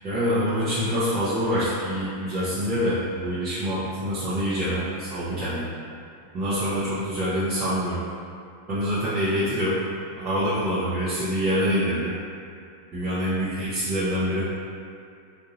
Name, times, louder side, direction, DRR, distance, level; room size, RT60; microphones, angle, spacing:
voice 1, 0.0-5.7 6.3-8.0 8.7-9.8 10.1-12.1 12.9-14.5, equal, 35° right, -13 dB, 0.9 m, -25 dB
3.8 x 2.6 x 2.9 m, 2.5 s
figure-of-eight pair, 90°, 0 cm